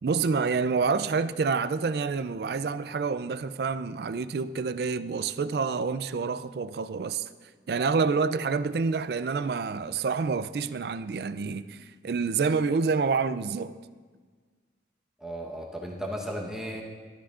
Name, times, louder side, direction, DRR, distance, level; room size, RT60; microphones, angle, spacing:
voice 1, 0.0-7.3 7.7-13.7, right 5 dB, 60° right, 0.4 m, -28 dB
voice 2, 15.2-16.8, equal, 5° right, 1.1 m, -35 dB
15.0 x 12.5 x 2.5 m
head